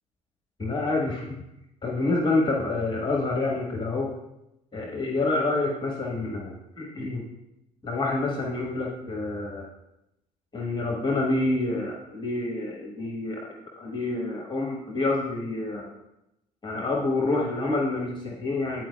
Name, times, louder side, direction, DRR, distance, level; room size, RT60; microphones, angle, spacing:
voice 1, 0.6-1.4 1.8-4.1 4.7-7.2 7.8-9.7 10.5-13.5 13.7-15.9 16.6-18.8, left 2 dB, 20° left, -2 dB, 1.3 m, -27 dB
9.9 x 4.6 x 2.3 m, 0.89 s
figure-of-eight pair, 55°, 21 cm